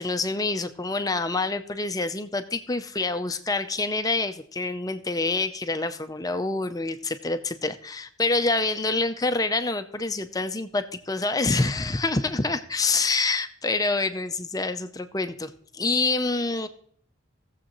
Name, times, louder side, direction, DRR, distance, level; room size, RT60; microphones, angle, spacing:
voice 1, 0.0-16.7, left 3 dB, 15° left, 10 dB, 0.5 m, -27 dB
18.0 x 7.4 x 3.0 m, 0.62 s
head